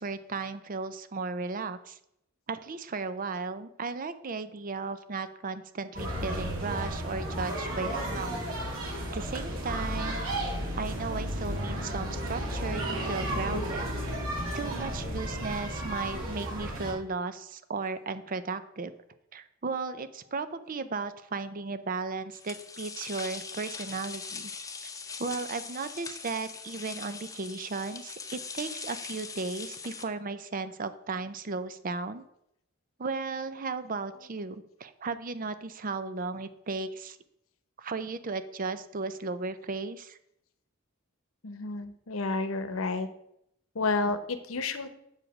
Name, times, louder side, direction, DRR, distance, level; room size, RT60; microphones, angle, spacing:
voice 1, 0.0-2.0 2.5-8.3 9.1-10.2 10.8-13.9 14.5-18.9 19.3-24.5 24.8-24.9 25.2-32.2 33.0-37.2 37.8-40.2, right 4 dB, 45° right, 12 dB, 0.6 m, -35 dB
sound 1, 5.9-16.9, right 1 dB, 80° right, 2.4 m, -33 dB
sound 2, 22.3-30.0, left 5 dB, 15° left, 0.6 m, -41 dB
voice 2, 41.4-43.1 43.7-44.9, left 3 dB, 90° left, 10 dB, 0.8 m, -30 dB
7.3 x 5.0 x 6.0 m, 0.76 s
head